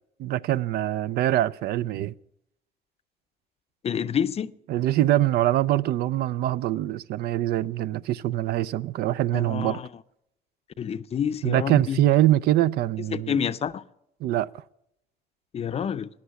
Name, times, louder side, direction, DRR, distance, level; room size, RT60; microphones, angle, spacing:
voice 1, 0.2-2.1 4.7-9.8 11.4-13.4 14.2-14.6, right 14 dB, 70° right, 0.4 m, -24 dB
voice 2, 3.8-4.5 9.3-9.9 10.8-12.0 13.1-13.8 15.5-16.1, left 8 dB, 35° left, 0.5 m, -28 dB
14.5 x 10.0 x 7.0 m
cardioid pair, 110°, 17 cm